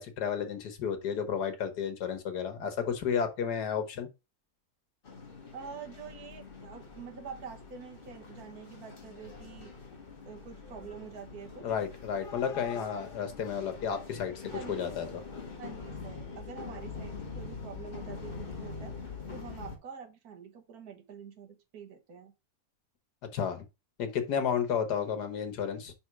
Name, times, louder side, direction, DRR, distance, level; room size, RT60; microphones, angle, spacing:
voice 1, 0.0-4.1 11.6-14.4 14.7-15.2 23.3-23.6 24.0-25.9, left 7 dB, 80° left, 1.7 m, -32 dB
sound 1, 5.0-19.8, left 4 dB, 35° left, 1.4 m, -44 dB
voice 2, 5.5-9.7 10.2-11.7 14.5-15.3 15.6-22.3 24.9-25.0, right 7 dB, 65° right, 1.6 m, -46 dB
5.2 x 4.3 x 4.7 m
omnidirectional pair, 1.7 m